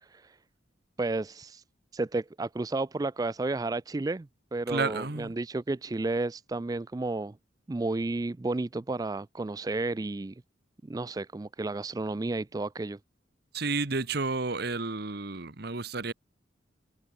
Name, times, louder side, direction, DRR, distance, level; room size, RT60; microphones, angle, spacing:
voice 1, 0.0-0.4 1.0-1.6 1.9-7.4 7.7-10.3 10.9-13.0, right 2 dB, 20° right, 0.3 m, -32 dB
voice 2, 4.7-5.4 13.5-16.1, right 3 dB, 55° right, 1.3 m, -31 dB
head